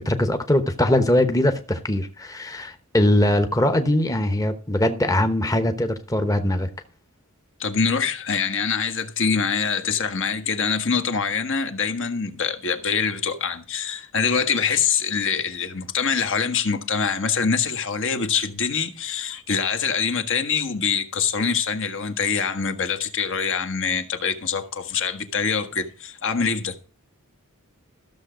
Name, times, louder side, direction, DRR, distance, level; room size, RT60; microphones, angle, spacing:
voice 1, 0.0-6.7, left 1 dB, 15° left, 1.0 m, -21 dB
voice 2, 7.6-26.7, left 6 dB, 60° left, 1.5 m, -24 dB
14.5 x 6.9 x 5.0 m
head